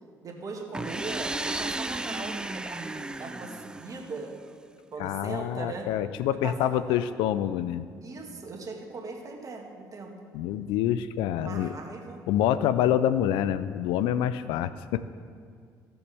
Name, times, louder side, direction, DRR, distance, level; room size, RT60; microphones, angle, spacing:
voice 1, 0.2-4.3 4.9-5.9 6.3-7.1 8.0-10.1 11.3-12.2, right 3 dB, 45° right, 1 dB, 1.7 m, -39 dB
sound 1, 0.7-4.5, right 2 dB, 10° right, 0.3 m, -34 dB
voice 2, 5.0-7.8 10.3-11.7 12.3-15.1, left 11 dB, 80° left, 14 dB, 0.4 m, -26 dB
15.0 x 7.0 x 3.4 m, 2.1 s
supercardioid pair, 65°, 8 cm